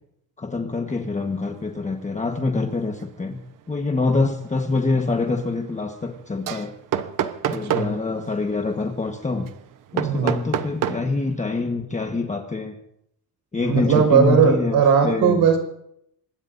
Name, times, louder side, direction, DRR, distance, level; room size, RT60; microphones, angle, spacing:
voice 1, 0.4-3.4 3.7-6.7 7.5-9.5 9.9-12.8 13.5-15.5, left 3 dB, 20° left, 3 dB, 1.3 m, -25 dB
sound 1, 0.9-1.2 1.5-1.8 2.2-11.4, right 9 dB, 55° right, 1.1 m, -31 dB
voice 2, 7.5-7.9 10.0-10.4 13.6-15.6, right 6 dB, 80° right, 4 dB, 5.3 m, -18 dB
25.5 x 21.0 x 2.7 m, 0.74 s
cardioid pair, 120°, 38 cm